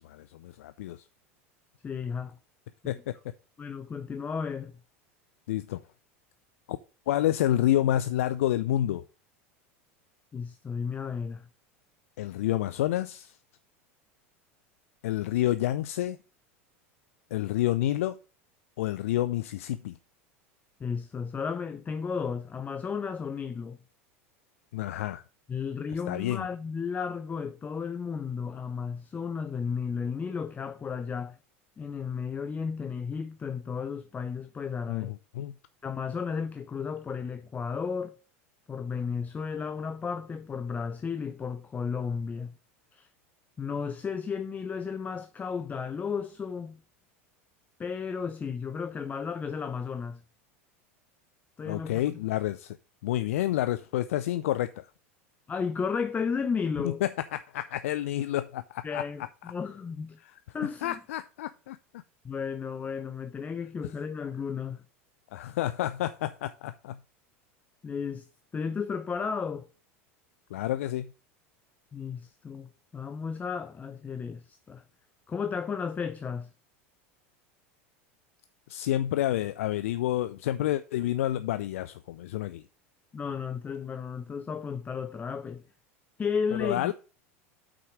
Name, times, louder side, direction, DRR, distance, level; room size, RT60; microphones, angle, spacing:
voice 1, 0.0-1.0 2.9-3.1 5.5-5.8 6.7-6.8 7.1-9.0 12.2-13.3 15.0-16.2 17.3-18.2 18.8-20.0 24.7-25.2 26.1-26.5 34.9-35.5 51.7-52.8 53.0-54.9 56.8-59.0 60.8-61.8 65.3-67.0 70.5-71.1 78.7-82.6 86.5-86.9, left 13 dB, 80° left, 0.4 m, -29 dB
voice 2, 1.8-2.4 2.8-2.9 3.6-4.7 10.3-11.5 20.8-23.8 25.5-31.3 31.8-35.1 35.8-38.2 38.7-42.5 42.9-43.1 43.6-46.8 47.8-50.2 51.6-52.0 55.5-57.0 58.8-60.2 60.5-61.0 62.2-64.8 67.8-68.3 68.5-69.6 71.9-74.8 75.3-76.5 83.1-85.6 86.2-86.9, left 6 dB, 20° left, 0.5 m, -33 dB
6.0 x 4.7 x 6.4 m
hypercardioid pair, 95°, 7 cm